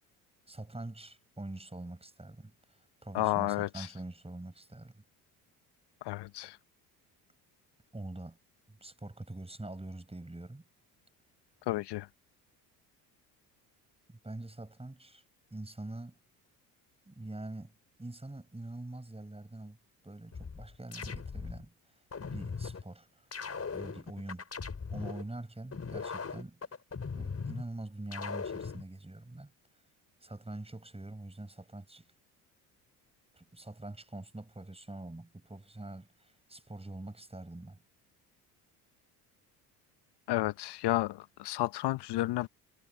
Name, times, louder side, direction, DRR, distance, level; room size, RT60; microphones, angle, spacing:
voice 1, 0.5-5.0 7.9-8.4 8.7-10.6 14.1-15.2 15.5-16.2 17.1-17.7 18.0-19.8 20.0-21.7 22.3-23.3 23.7-24.4 24.9-26.7 27.1-29.5 30.2-32.1 33.3-37.8, right 2 dB, 10° right, 8.0 m, -44 dB
voice 2, 3.1-3.9 6.0-6.6 11.7-12.1 40.3-42.5, left 16 dB, 55° left, 1.2 m, -31 dB
sound 1, 20.3-21.6 22.1-22.8 23.3-25.2 25.7-27.6 28.1-28.8, left 5 dB, 30° left, 5.3 m, -39 dB
hypercardioid pair, 55°, 48 cm